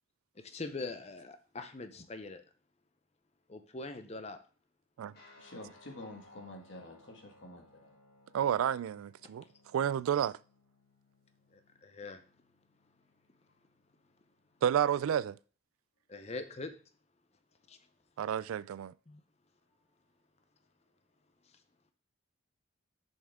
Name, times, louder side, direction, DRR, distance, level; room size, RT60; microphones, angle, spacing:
voice 1, 0.4-2.4 3.5-4.4 11.5-12.2 16.1-16.8 17.7-17.8 19.1-19.2 21.5-21.6, left 3 dB, 30° left, 0.6 m, -43 dB
Guitar, 5.1-15.0, left 2 dB, 50° left, 2.7 m, -64 dB
voice 2, 5.4-8.0, left 1 dB, 65° left, 1.7 m, -48 dB
voice 3, 8.3-9.4 9.7-10.3 14.6-15.4 18.2-18.9, right 9 dB, 85° right, 0.3 m, -30 dB
6.9 x 5.4 x 3.6 m
head